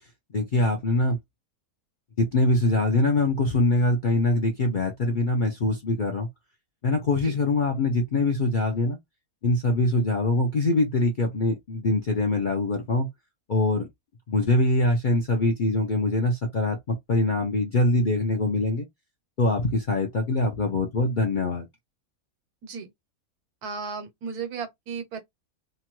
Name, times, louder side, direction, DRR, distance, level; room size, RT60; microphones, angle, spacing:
voice 1, 0.3-1.2 2.2-6.3 6.8-9.0 9.4-13.1 13.5-13.9 14.3-18.9 19.4-21.7, left 2 dB, 55° left, 0.5 m, -23 dB
voice 2, 23.6-25.2, right 5 dB, 85° right, 1.3 m, -35 dB
2.9 x 2.2 x 3.0 m
omnidirectional pair, 1.6 m